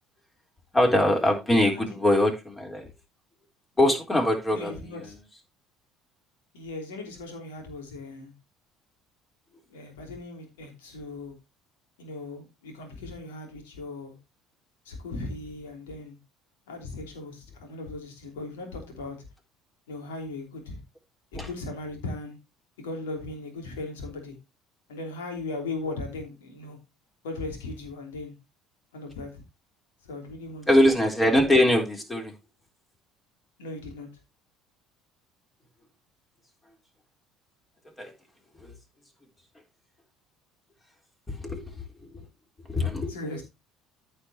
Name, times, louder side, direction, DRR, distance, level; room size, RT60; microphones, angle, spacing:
voice 1, 0.7-2.9 3.8-4.7 21.3-21.5 30.7-32.3 38.0-38.1 38.6-38.7 41.4-41.7 42.7-43.1, left 1 dB, 20° left, 3.7 m, -22 dB
voice 2, 4.5-5.1 6.5-8.3 9.7-11.3 12.0-14.2 14.8-16.2 16.7-19.3 19.9-20.8 21.3-22.4 22.8-24.4 24.9-26.8 27.2-28.3 28.9-29.4 30.0-30.9 33.6-34.1 43.1-43.4, left 2 dB, 75° left, 3.0 m, -38 dB
14.5 x 5.5 x 2.8 m
figure-of-eight pair, 60°, 0 cm